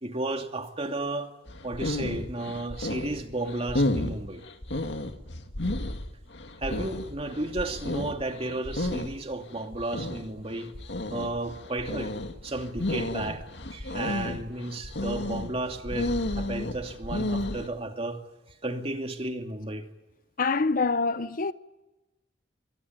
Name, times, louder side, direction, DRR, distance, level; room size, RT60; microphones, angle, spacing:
voice 1, 0.0-1.3 1.6-4.4 6.6-10.7 11.1-12.1 12.4-13.5 13.7-18.2 18.6-19.8, right 2 dB, 30° right, 2.7 m, -33 dB
sound 1, 1.5-17.7, left 1 dB, 70° left, 2.1 m, -32 dB
voice 2, 20.4-21.5, left 4 dB, 50° left, 0.8 m, -25 dB
24.5 x 19.0 x 9.5 m
head